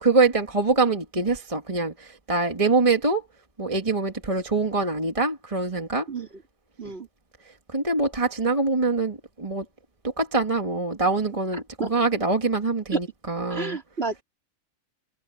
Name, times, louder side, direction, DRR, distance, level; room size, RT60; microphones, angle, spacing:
voice 1, 0.0-3.2 3.6-6.1 6.8-6.9 7.7-9.6 10.0-11.6 11.9-13.8, right 3 dB, 25° right, 1.8 m, -24 dB
voice 2, 13.5-14.2, right 3 dB, 45° right, 3.7 m, -29 dB
omnidirectional pair, 1.4 m